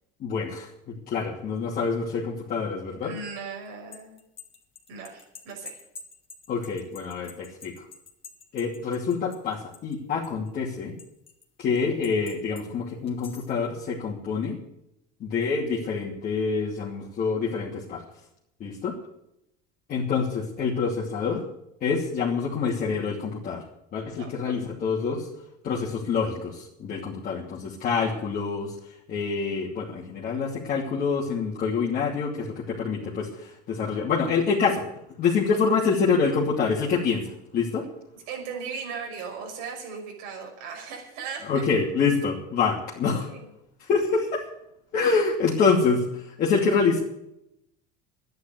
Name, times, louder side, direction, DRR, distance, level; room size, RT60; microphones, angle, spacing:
voice 1, 0.2-3.1 6.5-7.8 8.5-10.9 11.6-14.6 15.2-18.0 18.6-19.0 19.9-21.5 21.8-23.6 23.9-25.3 25.6-28.7 29.1-34.8 35.2-37.9 41.4-43.3 43.8-44.4 44.9-47.0, left 5 dB, 45° left, -4 dB, 2.7 m, -26 dB
voice 2, 3.0-4.2 4.9-5.8 24.2-24.7 38.3-41.5 43.0-43.5, right 5 dB, 80° right, 2 dB, 5.8 m, -37 dB
sound 1, 3.7-10.0 10.2-11.4 12.0-12.6 13.1-13.6, left 4 dB, 25° left, 2.4 m, -47 dB
11.5 x 10.5 x 9.1 m, 0.81 s
cardioid pair, 130°, 21 cm